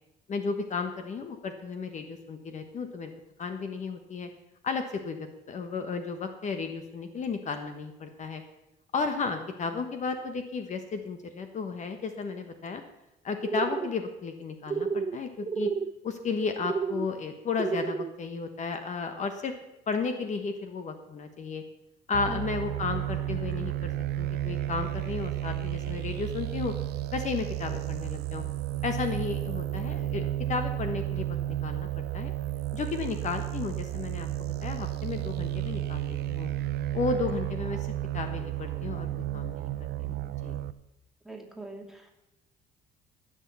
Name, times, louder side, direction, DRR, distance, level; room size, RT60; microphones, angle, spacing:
voice 1, 0.3-3.1 3.4-4.3 4.6-8.4 8.9-12.8 13.2-15.7 16.0-19.5 19.9-21.6 22.1-23.9 24.2-26.7 27.1-28.4 28.8-32.3 32.7-36.5 36.9-37.9 38.1-40.1 40.4-40.5, left 4 dB, 45° left, 7 dB, 1.3 m, -33 dB
sound 1, 13.4-13.9 14.7-15.2 15.4-15.9 16.6-17.1 17.6-18.1, right 5 dB, 20° right, 0.4 m, -30 dB
sound 2, 22.1-40.7, right 13 dB, 75° right, 0.6 m, -32 dB
voice 2, 22.3-22.6 41.2-42.1, right 1 dB, ahead, 1 dB, 2.4 m, -42 dB
15.0 x 6.5 x 8.4 m, 0.93 s
cardioid pair, 110°, 17 cm